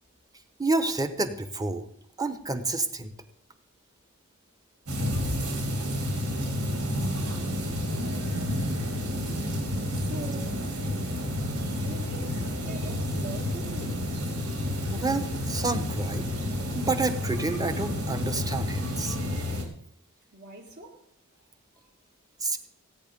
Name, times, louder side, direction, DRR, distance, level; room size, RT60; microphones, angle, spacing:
voice 1, 0.6-1.8 2.2-3.1 14.9-16.3 16.7-19.2 22.4-22.6, right 3 dB, 15° right, 1.1 m, -29 dB
sound 1, 4.9-19.6, left 1 dB, 85° right, 4.3 m, -30 dB
voice 2, 9.9-10.7 11.7-12.4 12.7-14.0 20.3-21.0, right 1 dB, 50° right, 2.0 m, -42 dB
17.0 x 9.3 x 5.4 m
head